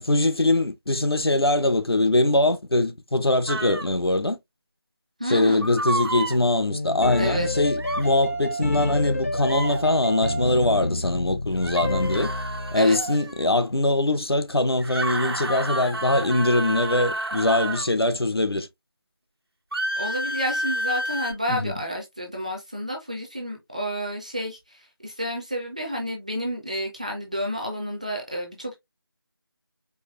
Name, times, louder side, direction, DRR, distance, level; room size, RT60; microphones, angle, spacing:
voice 1, 0.0-4.4 5.3-12.3 12.7-18.7 21.5-21.8, left 2 dB, 90° left, 0.8 m, -22 dB
sound 1, 3.5-3.9 5.6-6.4 7.8-8.1 9.4-9.8 11.6-13.5 14.8-17.9 19.7-21.3, right 1 dB, 85° right, 1.2 m, -30 dB
voice 2, 5.2-5.7 7.2-7.5 12.8-13.0 19.9-28.7, equal, 20° right, 0.5 m, -30 dB
sound 2, 6.7-12.8, left 1 dB, 35° left, 0.5 m, -29 dB
4.7 x 2.5 x 3.1 m
figure-of-eight pair, 165°, 12 cm